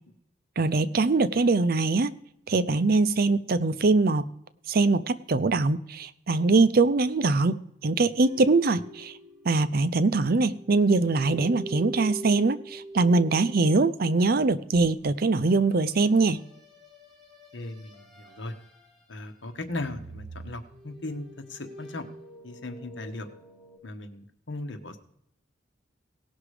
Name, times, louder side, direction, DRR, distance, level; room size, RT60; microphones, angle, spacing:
voice 1, 0.6-2.1 2.5-4.3 4.7-9.1 9.4-16.4, right 3 dB, 55° right, 14 dB, 0.6 m, -23 dB
sound 1, 8.2-10.2 10.4-14.3 15.9-19.2 19.4-23.8, right 1 dB, ahead, 3.7 m, -45 dB
voice 2, 17.5-18.5 19.1-22.0 22.4-23.3 23.8-25.0, left 2 dB, 80° left, 6 dB, 1.4 m, -37 dB
17.5 x 6.1 x 4.9 m, 0.76 s
head